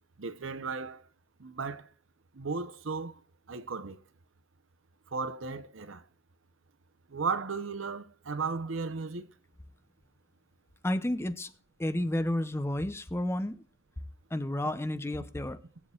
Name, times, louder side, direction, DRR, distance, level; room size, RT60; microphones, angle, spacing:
voice 1, 0.2-1.0 1.4-1.9 2.3-3.2 3.5-4.0 5.1-6.0 7.1-9.3, right 4 dB, 90° right, 0.8 m, -35 dB
voice 2, 10.8-11.5 11.8-13.6 14.3-15.6, left 1 dB, 15° left, 0.7 m, -31 dB
20.5 x 7.1 x 2.4 m
head